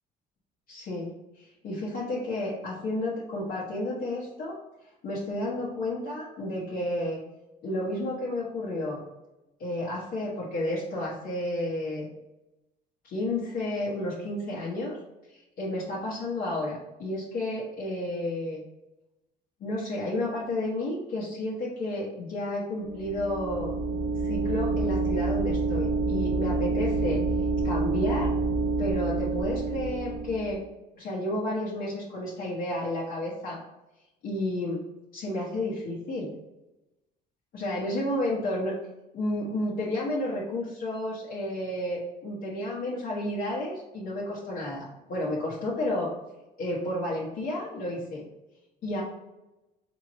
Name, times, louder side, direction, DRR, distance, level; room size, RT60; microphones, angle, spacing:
voice 1, 0.7-1.1 1.4-4.6 5.0-7.2 7.6-9.0 9.6-12.1 13.0-15.0 15.3-18.6 19.6-23.7 24.2-27.2 27.6-28.3 28.8-30.6 31.0-33.6 34.2-34.8 35.1-36.3 37.5-38.7 39.1-46.1 46.6-48.2 48.8-49.0, left 1 dB, 60° left, -6 dB, 1.1 m, -31 dB
sound 1, 22.8-30.6, right 3 dB, 70° right, 0.7 m, -28 dB
3.6 x 3.1 x 4.1 m, 0.99 s
cardioid pair, 110°, 17 cm